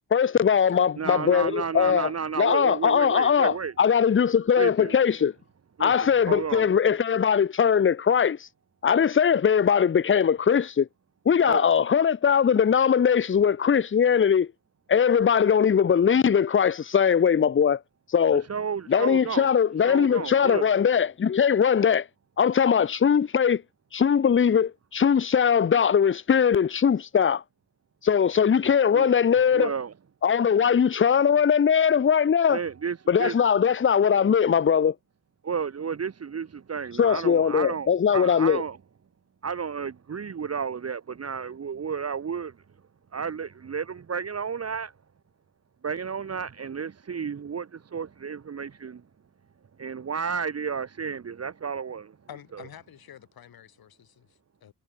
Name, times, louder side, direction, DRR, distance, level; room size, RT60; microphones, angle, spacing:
voice 1, 0.1-2.1 2.4-5.3 5.8-8.5 8.8-10.9 11.3-14.5 14.9-17.8 18.1-18.5 18.9-22.1 22.4-23.6 23.9-27.4 28.0-29.7 30.2-32.6 33.1-34.9 37.0-38.6, left 7 dB, 35° left, 0.8 m, -21 dB
voice 2, 1.0-3.7 4.6-4.9 5.8-6.7 11.5-11.6 18.3-19.5 19.9-20.7 28.9-29.1 29.5-29.9 32.5-33.4 35.4-38.8 39.4-42.5 43.1-44.9 45.8-49.0 49.8-52.1, right 6 dB, 45° right, 1.4 m, -32 dB
voice 3, 52.3-54.7, left 10 dB, 80° left, 5.2 m, -47 dB
cardioid pair, 75°, 36 cm